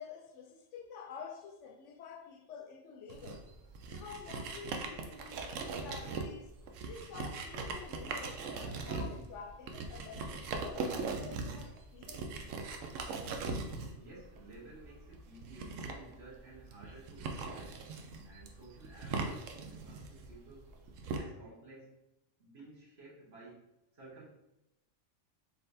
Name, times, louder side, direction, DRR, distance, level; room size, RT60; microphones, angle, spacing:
voice 1, 0.0-3.5 3.9-6.5 6.9-12.5, left 6 dB, 70° left, 0.9 m, -49 dB
sound 1, 3.1-21.2, right 4 dB, 75° right, 0.9 m, -40 dB
voice 2, 13.9-17.9 18.2-20.7 21.1-22.0 22.4-23.7 23.9-24.3, right 2 dB, 55° right, 1.4 m, -54 dB
4.1 x 3.6 x 2.6 m
omnidirectional pair, 1.3 m